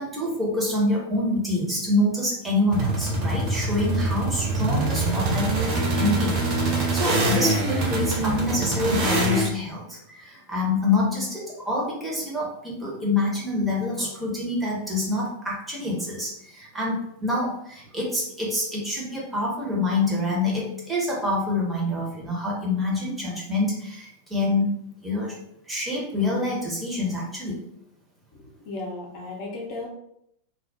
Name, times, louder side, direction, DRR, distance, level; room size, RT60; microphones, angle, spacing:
voice 1, 0.0-6.4 6.6-24.7 25.0-25.4 25.7-27.6, left 2 dB, 10° right, -4 dB, 0.8 m, -26 dB
sound 1, 2.7-9.5, right 2 dB, 40° right, 0.6 m, -24 dB
voice 2, 28.7-29.9, left 2 dB, 45° left, -2 dB, 0.6 m, -34 dB
2.3 x 2.0 x 2.6 m, 0.75 s
figure-of-eight pair, 90°, 0 cm